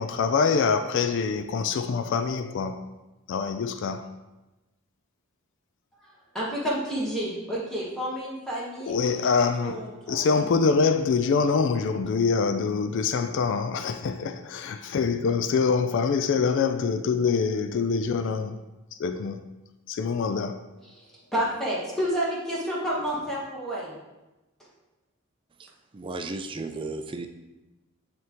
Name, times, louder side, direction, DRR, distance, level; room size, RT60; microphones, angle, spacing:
voice 1, 0.0-2.8 3.3-4.1 8.9-9.8 10.1-18.6 19.0-19.4 19.9-20.6, left 5 dB, 60° left, 0.3 m, -25 dB
voice 2, 6.0-10.8 20.8-23.9, equal, ahead, 1.2 m, -31 dB
voice 3, 25.9-27.3, right 3 dB, 25° right, 0.3 m, -34 dB
9.1 x 3.5 x 3.0 m
head